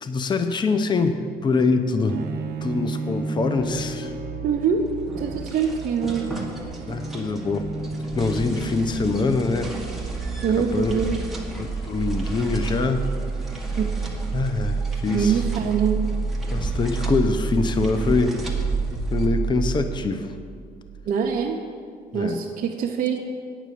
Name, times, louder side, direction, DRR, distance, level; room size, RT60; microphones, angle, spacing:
voice 1, 0.0-2.2 2.6-4.1 6.8-7.7 8.1-9.7 10.6-10.9 11.6-13.1 14.3-15.4 16.5-18.4 19.1-20.3 22.1-22.4, left 4 dB, 25° left, 8 dB, 0.6 m, -24 dB
Bowed string instrument, 2.1-9.1, right 3 dB, 70° right, 1.0 m, -34 dB
sound 1, 3.5-21.1 21.3-21.4, right 4 dB, 30° right, 1.2 m, -30 dB
voice 2, 4.4-4.9 5.2-6.3 10.4-11.2 13.8-13.9 15.1-16.0 21.1-21.6 22.1-23.2, right 7 dB, 50° right, -1 dB, 0.8 m, -24 dB
sound 2, 4.5-19.3, right 2 dB, ahead, 1.5 m, -36 dB
9.2 x 6.0 x 8.4 m, 2.1 s
cardioid pair, 110°, 17 cm